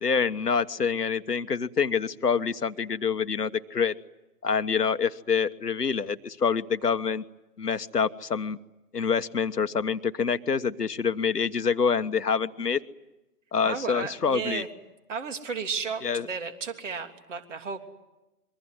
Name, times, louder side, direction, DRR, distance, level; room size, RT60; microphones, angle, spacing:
voice 1, 0.0-3.9 4.4-7.2 7.6-8.6 8.9-12.8 13.5-14.6 16.0-16.2, left 6 dB, 80° left, 11 dB, 1.3 m, -26 dB
voice 2, 13.6-14.7 15.1-17.8, right 6 dB, 50° right, 7 dB, 3.3 m, -33 dB
26.5 x 23.5 x 9.5 m, 0.98 s
figure-of-eight pair, 140°, 47 cm